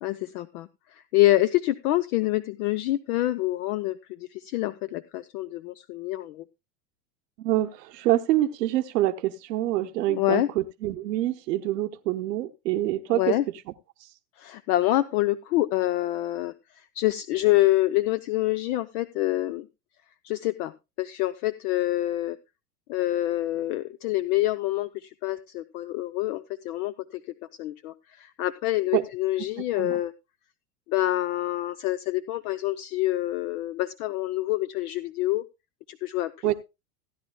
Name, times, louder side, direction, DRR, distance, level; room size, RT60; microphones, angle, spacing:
voice 1, 0.0-6.4 10.1-10.5 13.1-13.4 14.4-19.7 20.2-20.7 21.0-22.4 22.9-27.2 27.6-30.1 30.9-35.4 35.9-36.5, left 16 dB, 60° left, 14 dB, 0.7 m, -26 dB
voice 2, 7.4-13.4 14.0-14.1 28.9-29.0 29.8-30.0 36.4-36.5, right 14 dB, 75° right, 6 dB, 0.9 m, -26 dB
16.0 x 10.5 x 2.2 m, 0.25 s
hypercardioid pair, 105°, 49 cm